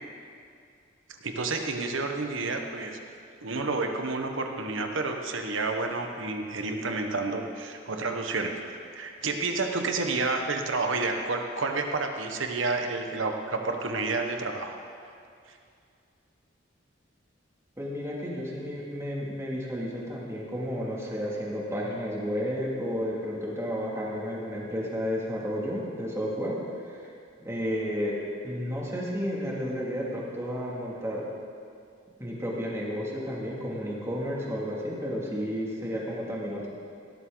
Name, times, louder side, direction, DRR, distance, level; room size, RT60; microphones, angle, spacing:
voice 1, 1.2-3.0 3.4-14.7 15.5-15.6, right 3 dB, 70° right, 4 dB, 1.3 m, -30 dB
voice 2, 17.8-26.6 26.8-27.1 27.4-28.2 28.4-31.2 32.2-36.7, equal, 15° right, -5 dB, 2.5 m, -32 dB
18.0 x 13.0 x 4.0 m, 2.4 s
head